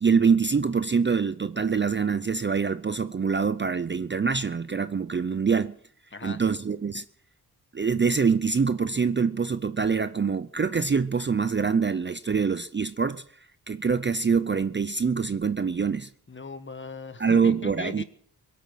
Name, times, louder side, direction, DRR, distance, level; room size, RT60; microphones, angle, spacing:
voice 1, 0.0-5.8 6.2-7.0 7.7-13.2 13.7-16.1 17.2-18.0, right 5 dB, 30° right, 0.5 m, -25 dB
voice 2, 6.1-6.4 16.3-18.0, left 3 dB, 30° left, 1.3 m, -38 dB
23.0 x 8.6 x 6.3 m
wide cardioid pair, 100°, 40 cm